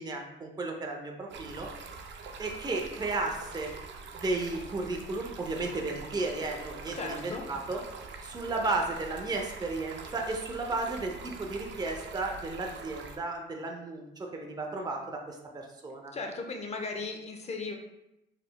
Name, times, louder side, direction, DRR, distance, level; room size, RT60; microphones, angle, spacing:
voice 1, 0.0-1.7 2.4-3.7 4.2-7.8 8.2-16.1, right 3 dB, 20° right, 1 dB, 0.6 m, -34 dB
Stream, 1.3-13.2, right 4 dB, 65° right, 0.5 m, -44 dB
voice 2, 6.9-7.4 16.1-17.7, left 3 dB, 35° left, 3 dB, 0.7 m, -36 dB
4.8 x 3.4 x 2.3 m, 0.89 s
cardioid pair, 90°, 20 cm